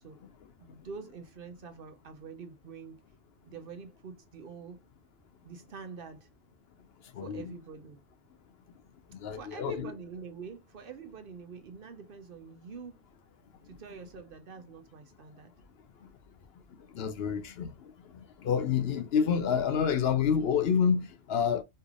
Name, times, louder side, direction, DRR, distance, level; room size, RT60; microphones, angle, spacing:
voice 1, 0.6-3.0 3.4-4.8 5.4-6.3 7.2-8.0 9.3-13.0 13.6-15.5, right 5 dB, 55° right, 0.9 m, -45 dB
voice 2, 7.1-7.5 9.1-9.9 16.9-17.7 18.4-21.6, left 7 dB, 65° left, 0.8 m, -28 dB
4.4 x 3.3 x 2.3 m
omnidirectional pair, 1.2 m